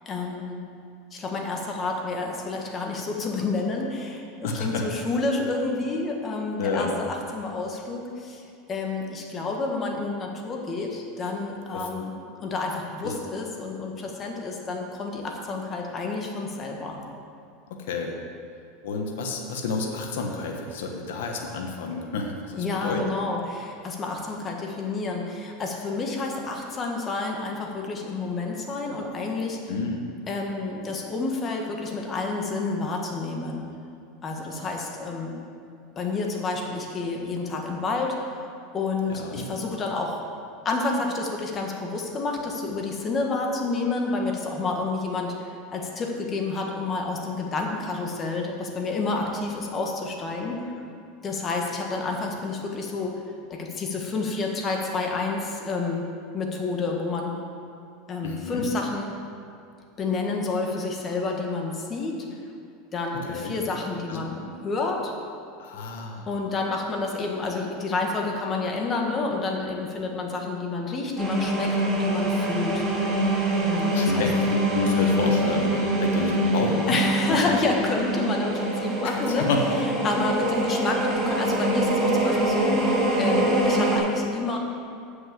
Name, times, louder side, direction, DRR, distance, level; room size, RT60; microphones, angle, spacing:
voice 1, 0.0-0.7 1.1-8.4 8.7-12.1 12.4-17.0 22.6-29.6 30.3-33.7 34.2-35.4 35.9-40.2 40.6-50.7 51.2-53.2 53.5-57.4 58.1-59.1 60.0-62.2 62.9-65.1 66.3-72.8 73.6-74.3 76.9-79.5 80.0-84.6, left 3 dB, 30° left, 1 dB, 1.6 m, -29 dB
voice 2, 4.4-4.8 6.6-7.0 11.7-11.8 13.0-13.1 17.7-18.1 18.8-23.0 29.7-30.1 39.1-39.5 58.2-58.7 63.3-63.5 64.1-64.2 65.6-66.2 73.9-77.0 79.0-79.6, left 3 dB, 80° left, 2 dB, 1.2 m, -29 dB
sound 1, 71.2-84.0, right 1 dB, 20° right, 2.8 m, -24 dB
7.8 x 6.5 x 7.5 m, 2.5 s
supercardioid pair, 125°, 0 cm